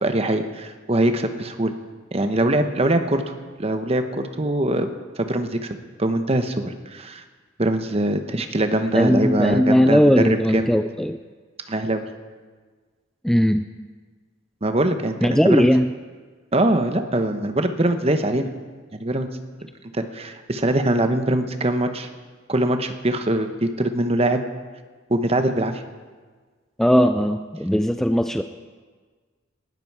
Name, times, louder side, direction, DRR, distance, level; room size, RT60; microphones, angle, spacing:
voice 1, 0.0-1.7 2.1-3.2 3.6-4.9 5.2-5.7 6.0-7.2 7.6-10.7 11.7-12.0 14.6-15.7 16.5-18.5 18.9-19.3 19.9-22.1 22.5-24.4 25.1-25.8, right 1 dB, 30° right, 8 dB, 1.0 m, -22 dB
voice 2, 8.9-11.2 13.2-13.7 15.2-15.9 26.8-28.4, equal, ahead, 8 dB, 0.3 m, -18 dB
19.0 x 13.0 x 4.7 m, 1.4 s
head